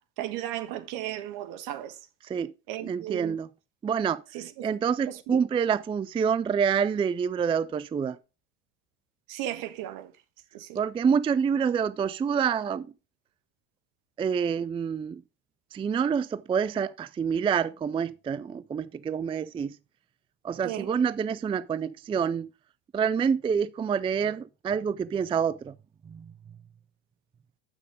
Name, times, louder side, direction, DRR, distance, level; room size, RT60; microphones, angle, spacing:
voice 1, 0.2-1.9 2.7-3.4 4.3-4.7 5.3-5.4 9.3-10.1 10.5-10.8 20.6-20.9, right 13 dB, 65° right, 1.4 m, -35 dB
voice 2, 2.8-3.5 3.8-4.2 4.6-8.2 10.7-12.9 14.2-15.2 15.7-19.7 20.4-22.5 22.9-25.7 26.1-26.3, right 7 dB, 15° right, 0.3 m, -27 dB
8.2 x 6.1 x 4.8 m
hypercardioid pair, 75°, 35 cm